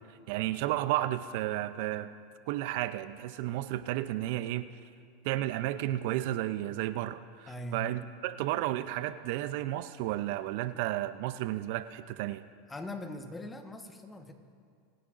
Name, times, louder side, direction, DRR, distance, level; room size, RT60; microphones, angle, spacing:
voice 1, 0.1-2.1 2.5-4.8 5.2-12.4, right 14 dB, 65° right, 12 dB, 0.4 m, -32 dB
voice 2, 7.5-7.9 12.7-14.3, equal, 15° left, 5 dB, 1.2 m, -40 dB
26.0 x 10.0 x 2.5 m, 2.3 s
hypercardioid pair, 110°, 0 cm